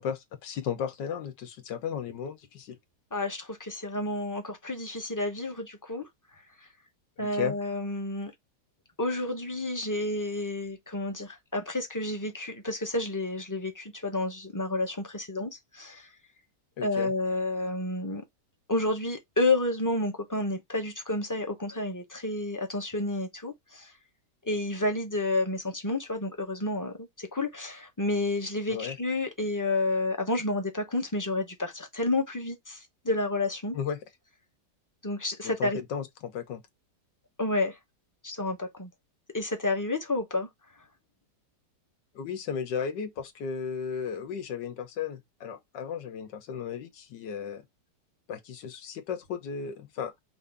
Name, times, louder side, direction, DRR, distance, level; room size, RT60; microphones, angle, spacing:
voice 1, 0.0-2.8 7.2-7.6 16.8-17.1 28.7-29.0 33.7-34.0 35.4-36.6 42.1-47.6 48.3-50.1, left 7 dB, 80° left, 1.6 m, -35 dB
voice 2, 3.1-6.1 7.2-8.3 9.0-16.1 16.8-18.2 18.7-23.9 24.4-33.8 35.0-35.8 37.4-37.8 38.2-38.9 39.3-40.5, left 2 dB, 20° left, 0.6 m, -30 dB
5.6 x 2.7 x 3.4 m
omnidirectional pair, 1.9 m